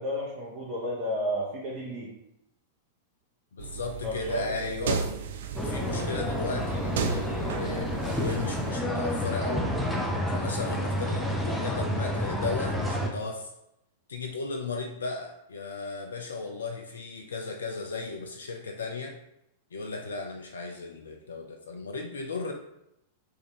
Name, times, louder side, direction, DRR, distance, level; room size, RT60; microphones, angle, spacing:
voice 1, 0.0-2.1 4.0-4.5 4.8-5.2, equal, 40° right, -4 dB, 0.7 m, -32 dB
voice 2, 3.5-5.0 5.6-9.7 10.3-13.5 14.1-19.1 19.7-22.5, left 4 dB, 70° left, 3 dB, 0.4 m, -35 dB
sound 1, 3.6-8.7, right 6 dB, 60° right, 0.3 m, -34 dB
sound 2, 5.6-13.1, equal, 5° left, 0.5 m, -30 dB
3.5 x 2.5 x 3.0 m, 0.82 s
figure-of-eight pair, 95°, 0 cm